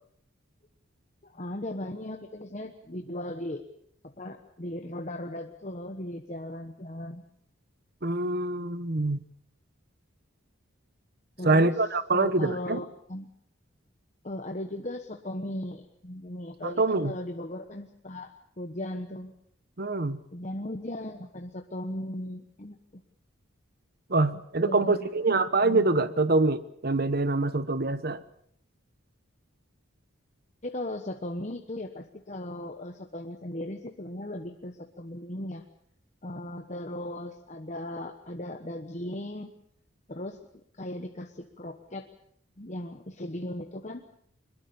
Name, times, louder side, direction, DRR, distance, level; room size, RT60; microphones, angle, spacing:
voice 1, 1.2-3.6 4.0-7.2 11.4-11.8 12.1-13.3 14.2-19.3 20.3-23.0 24.6-25.1 25.4-25.9 30.6-35.7 36.2-39.5 40.1-42.1 42.6-44.0, left 1 dB, 35° left, 5 dB, 1.2 m, -37 dB
voice 2, 8.0-9.2 11.4-12.8 16.6-17.1 19.8-20.2 24.1-28.2, right 2 dB, 45° right, 14 dB, 1.1 m, -25 dB
22.5 x 22.0 x 7.0 m, 0.66 s
head